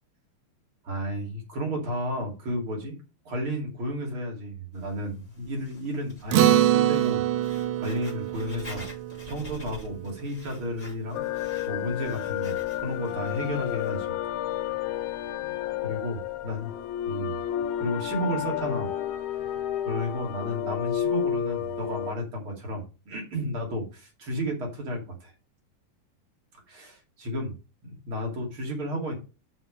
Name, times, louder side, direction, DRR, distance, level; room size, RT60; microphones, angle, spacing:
voice 1, 0.8-3.0 3.2-7.2 7.8-8.9 9.2-11.2 11.7-14.1 14.5-14.6 15.8-16.7 17.1-18.9 19.8-25.3 26.7-27.5 27.8-29.2, equal, 40° right, 0 dB, 2.8 m, -32 dB
Writing, 4.7-14.0, left 2 dB, 10° left, 4.0 m, -48 dB
Acoustic guitar, 6.3-11.0, right 12 dB, 90° right, 2.4 m, -25 dB
sound 1, 11.1-22.1, left 11 dB, 90° left, 2.5 m, -31 dB
6.7 x 6.1 x 5.3 m, 0.30 s
omnidirectional pair, 4.1 m